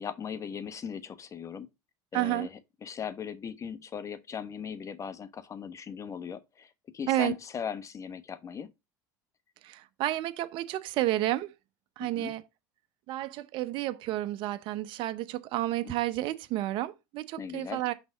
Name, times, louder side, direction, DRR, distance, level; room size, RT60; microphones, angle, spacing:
voice 1, 0.0-1.7 2.1-8.7 12.0-12.3 15.8-15.9 17.4-17.8, left 7 dB, 35° left, 1.0 m, -38 dB
voice 2, 2.1-2.5 7.1-7.4 9.6-11.5 12.0-12.4 13.1-17.9, right 15 dB, 60° right, 0.7 m, -31 dB
6.0 x 4.0 x 5.4 m
supercardioid pair, 95°, 10 cm